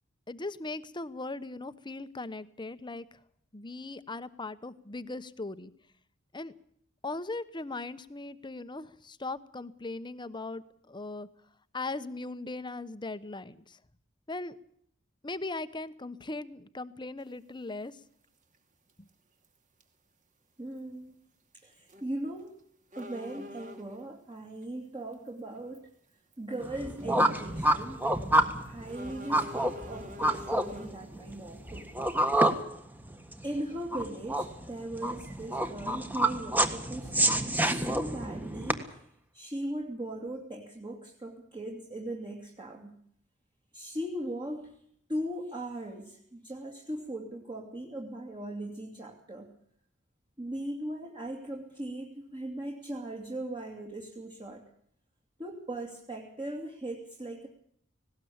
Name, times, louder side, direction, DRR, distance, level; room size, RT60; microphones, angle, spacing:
voice 1, 0.3-3.0 3.5-5.7 6.3-6.5 7.0-11.3 11.7-13.8 14.3-14.6 15.2-18.0 19.0-19.1, left 2 dB, 25° left, 14 dB, 1.0 m, -39 dB
sound 1, 17.2-17.3 18.9-19.1 19.4-19.5 19.8-19.9 21.8-22.1 22.4-22.5 22.9-24.1 25.1-25.3 25.7-25.8 26.3-26.5 27.0-27.1 28.9-31.0, left 1 dB, 40° right, 2.7 m, -45 dB
voice 2, 20.6-21.1 21.5-22.5 22.9-25.9 26.4-28.0 28.6-32.2 33.4-39.1 39.3-42.9 43.7-44.7 45.1-49.5 50.4-54.6 55.4-57.5, right 1 dB, 25° right, 0 dB, 2.6 m, -39 dB
sound 2, 26.6-38.7, right 1 dB, 10° right, 1.6 m, -28 dB
19.0 x 18.0 x 8.7 m, 0.67 s
head